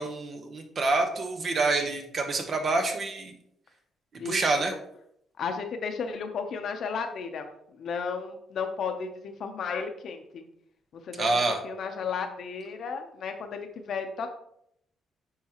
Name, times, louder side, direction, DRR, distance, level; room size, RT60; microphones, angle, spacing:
voice 1, 0.0-3.3 4.2-4.7 11.2-11.6, right 3 dB, 50° right, 4 dB, 1.2 m, -27 dB
voice 2, 4.2-4.8 5.4-7.5 7.7-10.5 10.9-14.3, left 5 dB, 65° left, 6 dB, 0.8 m, -34 dB
9.6 x 3.7 x 3.0 m, 0.73 s
cardioid pair, 90°, 0 cm